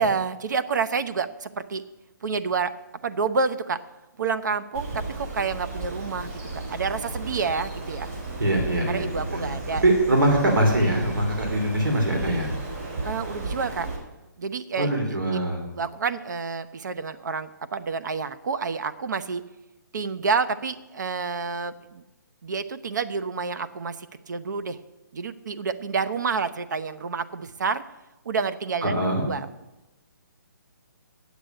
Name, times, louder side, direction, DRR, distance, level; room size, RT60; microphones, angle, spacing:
voice 1, 0.0-1.8 2.2-2.7 3.0-3.8 4.2-8.1 8.9-9.8 13.0-13.9 14.4-15.2 15.7-19.4 19.9-22.0 22.4-24.8 25.1-27.8 28.2-28.9 29.3-29.5, right 5 dB, 65° right, 12 dB, 0.8 m, -28 dB
Bird, 4.7-14.0, right 2 dB, 45° right, 4.4 m, -34 dB
voice 2, 8.4-9.5 9.8-12.5 14.8-15.6 28.8-29.3, right 1 dB, 85° right, 2 dB, 3.1 m, -23 dB
8.3 x 8.2 x 8.9 m, 1.0 s
hypercardioid pair, 165°, 11 cm